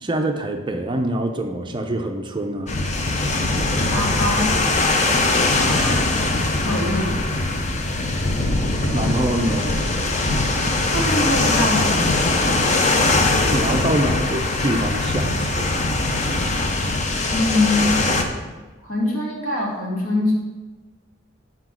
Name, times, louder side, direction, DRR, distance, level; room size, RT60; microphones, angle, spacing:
voice 1, 0.0-2.7 8.9-9.8 13.4-15.9, right 1 dB, 20° right, 4 dB, 0.5 m, -25 dB
sound 1, 2.7-18.2, left 2 dB, 35° left, 0.6 m, -21 dB
voice 2, 3.9-6.1 6.6-7.2 10.9-12.6 17.3-18.0 18.8-20.3, left 2 dB, 70° left, -3 dB, 2.0 m, -24 dB
5.8 x 5.0 x 6.0 m, 1.2 s
head